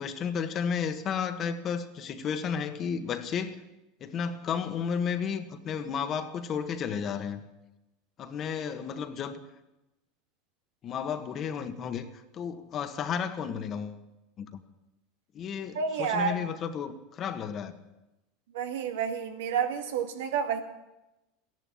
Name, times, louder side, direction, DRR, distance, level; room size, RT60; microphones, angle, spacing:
voice 1, 0.0-3.6 4.0-7.4 8.2-9.4 10.8-12.1 12.3-14.0 14.4-14.5 15.3-17.8, left 7 dB, 40° left, 1.6 m, -32 dB
voice 2, 15.7-16.4 18.5-20.6, right 7 dB, 80° right, 1.9 m, -29 dB
15.0 x 11.0 x 8.7 m
hypercardioid pair, 100°, 0 cm